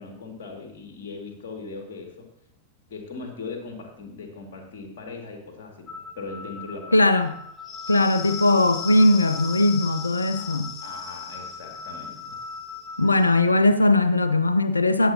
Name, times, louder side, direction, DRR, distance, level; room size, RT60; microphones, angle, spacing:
voice 1, 0.0-2.3 2.9-7.0 10.4-12.4, left 3 dB, 50° left, 2.2 m, -39 dB
sound 1, 5.9-13.4, left 6 dB, 25° left, 0.8 m, -37 dB
voice 2, 6.9-7.4 7.9-10.8 13.0-15.1, left 2 dB, 80° left, 0.6 m, -19 dB
19.5 x 7.3 x 2.8 m
figure-of-eight pair, 90°, 0 cm